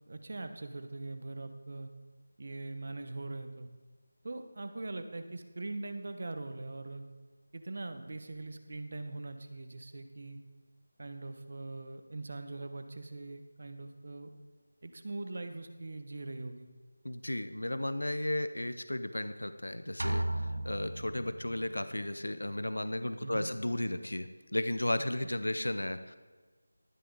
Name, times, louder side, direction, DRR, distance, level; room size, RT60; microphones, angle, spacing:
voice 1, 0.1-1.9 2.4-3.7 4.2-7.1 7.5-10.4 11.0-14.3 14.8-16.7 23.2-23.5 25.2-25.3, right 2 dB, 50° right, 8 dB, 1.1 m, -42 dB
voice 2, 17.0-26.2, left 1 dB, 90° left, 11 dB, 0.8 m, -34 dB
sound 1, 20.0-21.8, right 1 dB, 85° right, 0.9 m, -35 dB
12.5 x 11.0 x 4.0 m, 1.4 s
figure-of-eight pair, 170°, 0 cm